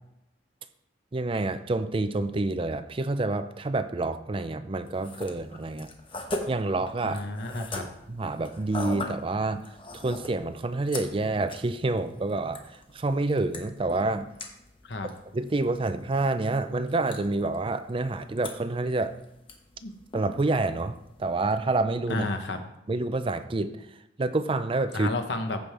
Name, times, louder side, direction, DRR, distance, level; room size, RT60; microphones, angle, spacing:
voice 1, 1.1-5.9 6.5-7.2 8.1-14.3 15.3-19.1 20.1-22.3 22.9-23.9 24.2-25.1, right 2 dB, 30° right, 11 dB, 0.5 m, -28 dB
sound 1, 4.8-21.4, left 2 dB, 30° left, 1.1 m, -42 dB
voice 2, 7.0-7.9 14.8-15.1 19.8-20.0 22.1-22.6 24.9-25.6, left 2 dB, 70° left, 6 dB, 1.1 m, -31 dB
14.5 x 5.4 x 3.4 m, 0.84 s
head